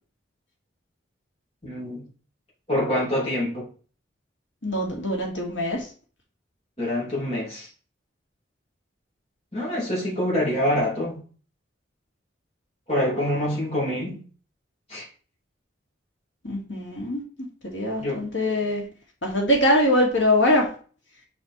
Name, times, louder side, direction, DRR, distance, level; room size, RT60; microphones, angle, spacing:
voice 1, 1.6-2.0 2.7-3.7 6.8-7.7 9.5-11.2 12.9-14.2 14.9-15.1 18.0-18.3, left 1 dB, 30° left, 3.4 m, -26 dB
voice 2, 4.6-5.9 16.4-17.2 17.6-18.8 19.2-20.7, left 1 dB, 75° left, 2.3 m, -23 dB
5.8 x 4.4 x 4.6 m
head